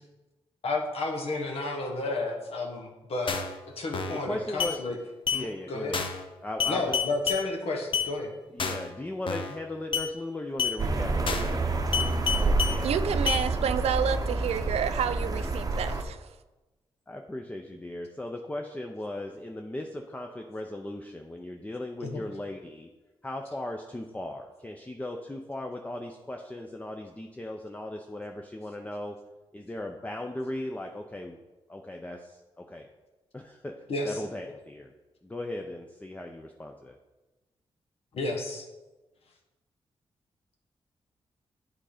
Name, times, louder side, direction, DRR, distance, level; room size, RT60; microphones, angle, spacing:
voice 1, 0.6-3.4 3.8-5.0 5.3-6.0 6.7-8.3 22.0-22.2 33.9-34.2 38.1-38.6, left 2 dB, 75° left, 1 dB, 1.2 m, -31 dB
sound 1, 3.3-3.6 3.9-4.2 4.6-4.8 5.3-5.4 5.9-6.2 6.6-7.4 7.9-8.1 8.6-8.9 9.3-9.6 9.9-10.1 10.6-10.8 11.3-11.6 11.9-12.8 13.3-13.4, left 7 dB, 55° left, 0.7 m, -29 dB
voice 2, 4.1-4.8 5.3-6.0 6.4-7.0 8.5-11.9 12.3-13.2 15.6-15.7 17.1-22.9 23.2-29.2 29.5-31.4 31.7-32.9 33.3-33.7 34.0-34.9 35.2-37.0, left 1 dB, 15° left, 3 dB, 0.6 m, -37 dB
sound 2, 10.8-16.0, right 3 dB, 35° right, 0.7 m, -28 dB
voice 3, 12.8-16.3, right 8 dB, 80° right, 12 dB, 0.4 m, -29 dB
8.3 x 3.8 x 5.0 m, 1.1 s
cardioid pair, 70°, 10 cm